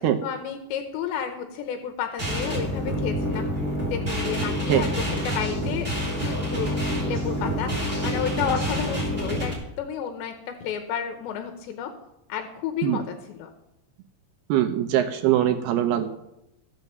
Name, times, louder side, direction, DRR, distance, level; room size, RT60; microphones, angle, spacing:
voice 1, 0.0-3.5 3.9-4.9 5.2-11.9 12.3-13.5, left 8 dB, 85° left, 5 dB, 3.3 m, -32 dB
sound 1, 2.2-9.5, equal, 15° right, 3.9 m, -27 dB
voice 2, 14.5-16.1, right 12 dB, 75° right, 6 dB, 2.6 m, -22 dB
15.0 x 7.2 x 6.7 m, 0.85 s
omnidirectional pair, 4.9 m